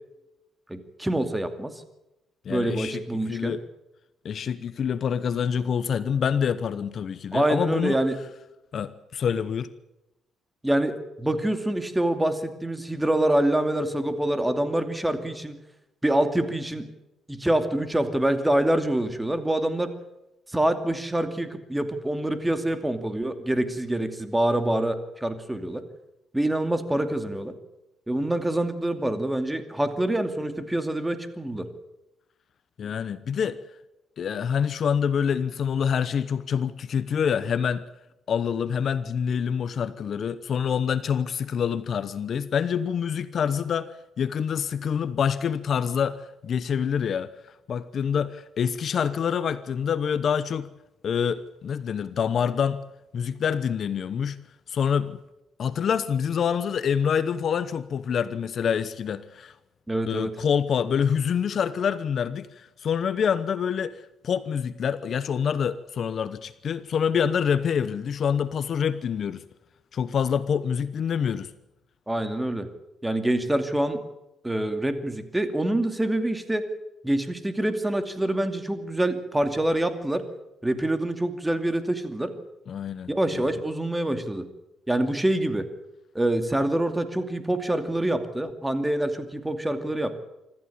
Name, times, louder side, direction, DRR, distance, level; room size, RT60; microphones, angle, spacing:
voice 1, 0.7-1.7 2.5-3.6 7.3-8.2 10.6-15.6 16.0-16.9 17.3-19.9 20.5-25.8 26.3-27.5 28.1-31.7 59.9-60.3 72.1-72.7 73.0-74.0 74.4-76.7 77.0-80.2 80.6-82.3 83.1-84.5 84.9-85.6 86.1-90.2, right 1 dB, 10° right, 8 dB, 2.5 m, -26 dB
voice 2, 2.4-3.0 3.3-3.6 4.2-8.0 8.7-9.7 32.8-33.6 34.2-37.8 38.3-47.3 47.7-50.7 51.0-52.8 53.1-54.4 54.7-55.2 55.6-59.5 60.1-69.4 69.9-71.5 82.7-83.5, left 7 dB, 55° left, 14 dB, 0.9 m, -26 dB
25.5 x 14.0 x 8.7 m, 0.93 s
cardioid pair, 95°, 0 cm